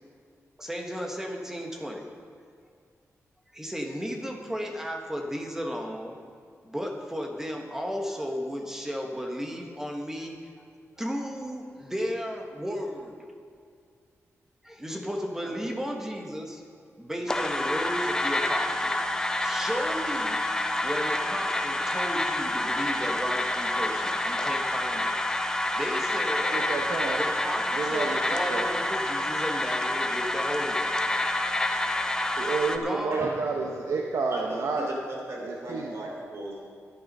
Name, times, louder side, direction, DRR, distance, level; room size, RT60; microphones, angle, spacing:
voice 1, 0.6-2.1 3.5-6.2 6.6-10.6 11.0-13.2 14.6-16.6 17.0-20.4 20.8-25.2 25.5-26.6 27.2-30.9 31.6-31.7 32.7-33.3, equal, 10° right, 1 dB, 1.4 m, -34 dB
sound 1, 17.3-32.8, left 1 dB, 10° left, 0.7 m, -28 dB
voice 2, 26.5-27.2 27.8-28.2 28.5-28.6 32.4-34.9 35.7-35.9, right 4 dB, 80° right, 0 dB, 1.0 m, -29 dB
voice 3, 33.1-33.7 34.3-36.7, right 1 dB, 60° right, -1 dB, 3.3 m, -38 dB
11.5 x 11.5 x 5.4 m, 2.3 s
wide cardioid pair, 145°, 5 cm